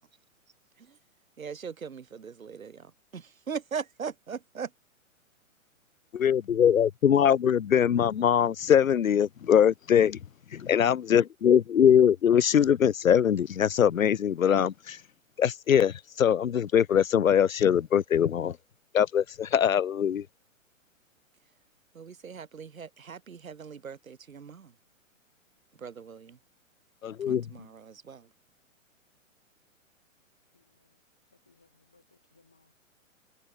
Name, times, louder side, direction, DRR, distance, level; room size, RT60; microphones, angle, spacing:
voice 1, 1.4-4.7 21.9-24.7 25.8-26.4 27.3-28.3, right 6 dB, 80° right, 1.0 m, -40 dB
voice 2, 6.1-10.2 10.5-15.0 15.4-18.6 18.9-20.3 27.0-27.5, left 8 dB, 80° left, 0.6 m, -22 dB
voice 3, 30.5-31.0 31.5-32.7, left 3 dB, 5° left, 0.3 m, -66 dB
figure-of-eight pair, 115°, 40 cm